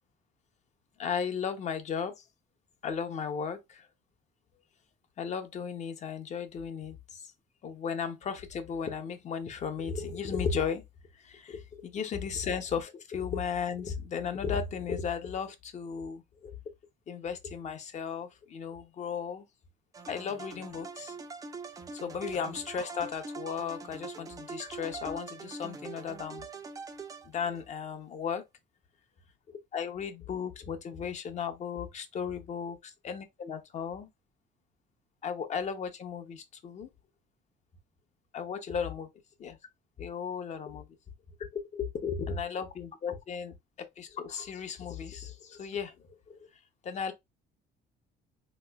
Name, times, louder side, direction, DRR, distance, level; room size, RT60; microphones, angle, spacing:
voice 1, 1.0-2.2 2.8-3.9 5.2-7.3 7.6-10.8 11.2-16.5 17.1-19.4 20.1-21.1 21.9-26.5 27.2-28.4 29.7-34.1 35.2-36.9 38.3-39.1 39.4-39.6 40.0-40.8 41.5-46.0 46.3-46.5 46.8-47.1, left 6 dB, 40° left, 0.6 m, -35 dB
sound 1, 19.9-27.7, right 4 dB, 20° right, 0.4 m, -43 dB
3.6 x 3.0 x 2.2 m
cardioid pair, 155°, 19 cm